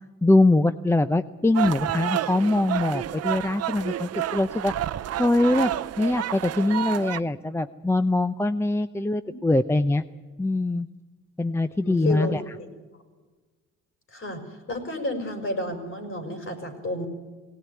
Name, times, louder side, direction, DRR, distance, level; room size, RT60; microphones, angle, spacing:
voice 1, 0.2-5.7 6.0-10.0 10.4-10.9 11.4-12.4, left 2 dB, 10° left, 12 dB, 0.6 m, -23 dB
sound 1, 1.5-7.2, right 12 dB, 55° right, 0.7 m, -30 dB
voice 2, 11.8-12.4 14.1-14.4 14.7-17.1, left 1 dB, 45° left, 6 dB, 5.5 m, -31 dB
18.5 x 18.0 x 9.5 m, 1.3 s
cardioid pair, 90°, 30 cm